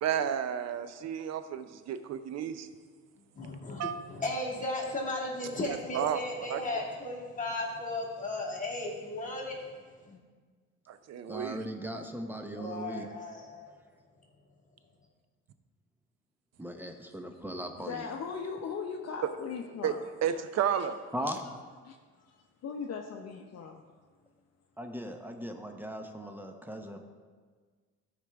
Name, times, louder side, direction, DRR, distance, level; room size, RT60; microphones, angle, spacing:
voice 1, 0.0-2.7 3.8-3.9 5.9-6.2 6.5-6.6 10.9-11.6 19.8-19.9 20.2-21.0, right 9 dB, 60° right, 11 dB, 0.6 m, -31 dB
voice 2, 3.4-9.8 10.0-10.2 12.6-13.7, left 2 dB, 25° left, -3 dB, 2.0 m, -35 dB
voice 3, 11.3-13.1 16.6-18.0 21.1-21.4 24.8-27.0, right 1 dB, 5° right, 5 dB, 0.8 m, -38 dB
voice 4, 17.8-20.4 20.7-20.9 21.8-23.8 26.2-26.3, left 6 dB, 55° left, 2 dB, 0.7 m, -40 dB
13.0 x 5.0 x 3.4 m, 1.5 s
cardioid pair, 90°, 30 cm